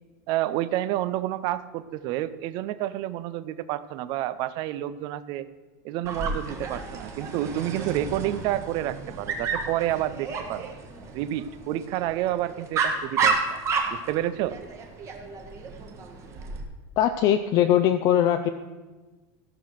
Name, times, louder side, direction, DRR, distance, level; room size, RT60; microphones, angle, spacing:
voice 1, 0.3-5.5 5.8-10.7 11.1-13.6 13.9-14.6, right 13 dB, 45° right, 15 dB, 0.5 m, -29 dB
Dog, 6.0-16.6, right 4 dB, 25° right, 1.4 m, -31 dB
voice 2, 17.0-18.5, left 10 dB, 40° left, 7 dB, 0.5 m, -21 dB
15.0 x 6.0 x 6.4 m, 1.3 s
supercardioid pair, 165°, 11 cm